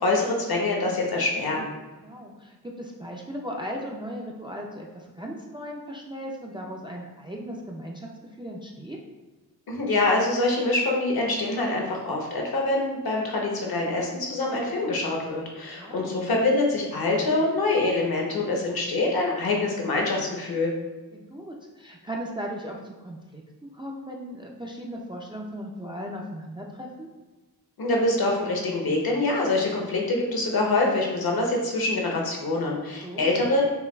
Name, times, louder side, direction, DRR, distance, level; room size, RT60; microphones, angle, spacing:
voice 1, 0.0-1.7 9.7-20.7 27.8-33.6, left 2 dB, 70° left, -1 dB, 0.8 m, -25 dB
voice 2, 2.0-9.0 15.7-16.2 21.1-27.1 33.0-33.4, equal, 15° right, -1 dB, 0.3 m, -37 dB
5.4 x 2.2 x 2.2 m, 1.2 s
wide cardioid pair, 120°, 38 cm